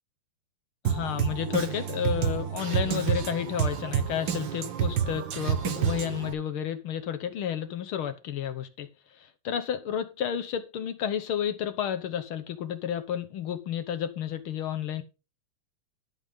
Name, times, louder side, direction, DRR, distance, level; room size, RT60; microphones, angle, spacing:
voice 1, 0.8-15.0, left 9 dB, 65° left, 1.4 m, -31 dB
Drum kit, 0.8-6.3, right 8 dB, 55° right, 1.3 m, -29 dB
11.5 x 8.8 x 3.6 m
omnidirectional pair, 3.4 m